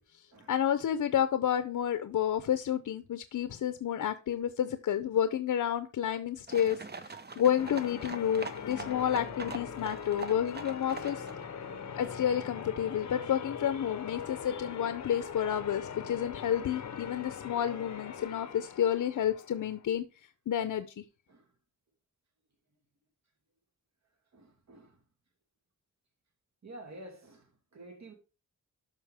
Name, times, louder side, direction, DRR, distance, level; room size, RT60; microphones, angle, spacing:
voice 1, 0.5-6.8 7.4-11.2 12.0-20.0 20.5-21.0, left 9 dB, 75° left, 0.7 m, -30 dB
sound 1, 6.5-11.4, right 4 dB, 30° right, 0.9 m, -43 dB
Church bell, 7.6-19.8, left 7 dB, 60° left, 1.0 m, -42 dB
voice 2, 11.7-12.2 14.2-14.3 16.5-16.6 18.3-18.4 21.3-21.5 24.3-25.0 26.6-28.1, right 1 dB, 55° right, 2.7 m, -51 dB
12.0 x 5.5 x 3.5 m
wide cardioid pair, 95°, 32 cm